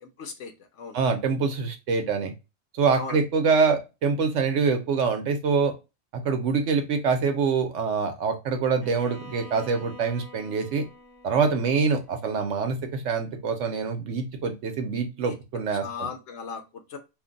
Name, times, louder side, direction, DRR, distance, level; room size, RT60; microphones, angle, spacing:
voice 1, 0.0-1.0 3.0-3.2 15.2-15.3 15.7-17.0, left 5 dB, 65° left, 4 dB, 0.8 m, -37 dB
voice 2, 0.9-2.3 2.8-5.7 6.1-10.9 11.2-15.8, right 5 dB, 70° right, 6 dB, 0.9 m, -25 dB
Bowed string instrument, 8.8-12.8, equal, 40° left, 0.9 m, -47 dB
2.5 x 2.1 x 3.7 m, 0.26 s
omnidirectional pair, 1.4 m